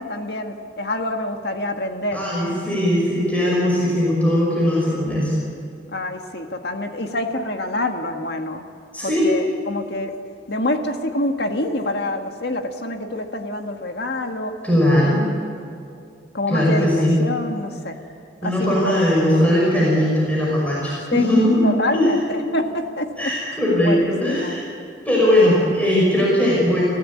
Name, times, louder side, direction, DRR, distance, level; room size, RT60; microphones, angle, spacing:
voice 1, 0.0-2.2 5.9-8.6 9.0-10.2 10.5-14.5 16.3-16.9 17.2-18.0 18.4-19.1 21.1-21.3 21.6-23.3 23.8-24.6 25.5-25.6, left 1 dB, 65° left, 5 dB, 2.0 m, -26 dB
voice 2, 2.1-5.3 8.9-9.3 14.6-15.2 16.5-17.2 18.4-22.1 23.2-24.7 25.0-26.8, left 1 dB, 10° left, -5 dB, 6.0 m, -19 dB
30.0 x 16.5 x 8.8 m, 2.4 s
head